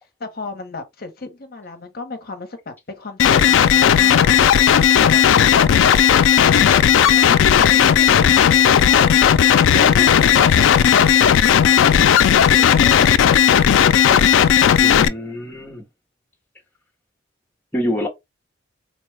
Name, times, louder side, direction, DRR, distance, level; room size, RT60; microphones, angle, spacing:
voice 1, 0.2-4.8 5.1-14.0, left 3 dB, 50° left, 0.8 m, -34 dB
sound 1, 3.2-15.1, left 9 dB, 80° left, 0.3 m, -14 dB
voice 2, 14.8-15.8 17.7-18.1, equal, 10° left, 0.7 m, -26 dB
4.1 x 2.2 x 3.2 m
head